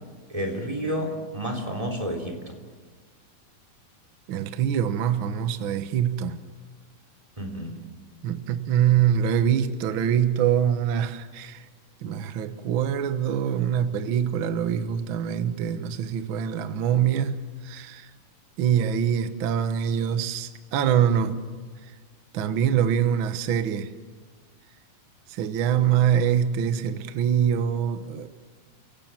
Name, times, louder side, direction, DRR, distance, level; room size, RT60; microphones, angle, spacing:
voice 1, 0.3-2.6 7.4-7.8, equal, 10° right, 3.0 m, -30 dB
voice 2, 4.3-6.4 8.2-11.6 12.0-18.1 18.6-21.5 22.3-23.9 25.3-28.3, right 9 dB, 85° right, 1.1 m, -24 dB
29.5 x 17.5 x 7.6 m
omnidirectional pair, 4.2 m